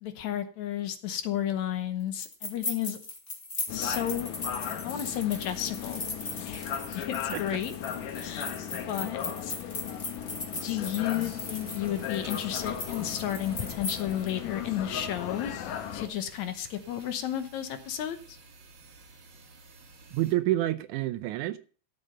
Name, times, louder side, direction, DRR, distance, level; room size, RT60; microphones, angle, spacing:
voice 1, 0.0-3.0 3.7-4.4 4.8-6.0 6.4-6.7 6.9-7.7 8.1-8.5 8.9-9.6 10.6-15.5 15.9-18.4, left 11 dB, 70° left, 2.2 m, -32 dB
sound 1, 2.2-14.3, left 3 dB, 30° left, 1.2 m, -38 dB
sound 2, 3.7-16.1, left 9 dB, 90° left, 2.7 m, -37 dB
sound 3, 11.0-20.3, right 3 dB, 40° right, 2.1 m, -53 dB
voice 2, 20.1-21.6, right 15 dB, 80° right, 2.1 m, -28 dB
13.0 x 7.9 x 5.3 m
omnidirectional pair, 3.6 m